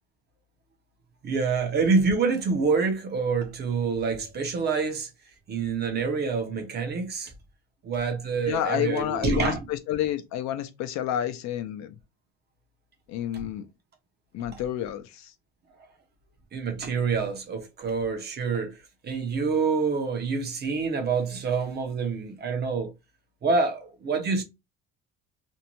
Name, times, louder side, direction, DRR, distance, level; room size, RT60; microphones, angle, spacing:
voice 1, 1.2-5.1 5.5-7.3 7.8-9.6 16.5-18.7 19.0-22.9 23.4-24.4, right 4 dB, 35° right, 0.6 m, -26 dB
voice 2, 8.5-12.0 13.1-13.7 14.3-15.3, left 11 dB, 60° left, 0.5 m, -29 dB
2.6 x 2.1 x 2.9 m
cardioid pair, 135°, 31 cm